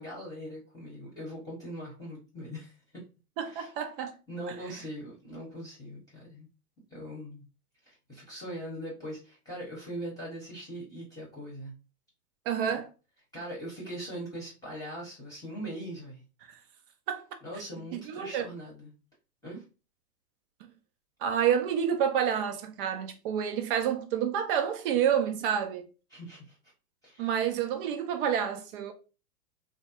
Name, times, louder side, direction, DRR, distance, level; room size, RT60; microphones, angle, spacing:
voice 1, 0.0-3.0 3.5-3.7 4.3-6.5 6.9-7.5 7.8-11.7 13.3-16.2 17.4-18.9 19.4-19.6 26.1-26.6 27.0-27.3, right 1 dB, 10° left, 1.0 m, -41 dB
voice 2, 3.4-4.1 12.5-12.9 16.5-16.6 17.1-17.2 17.9-18.5 21.2-25.9 27.2-28.9, right 8 dB, 35° right, 0.5 m, -29 dB
3.2 x 2.1 x 2.9 m
hypercardioid pair, 110°, 46 cm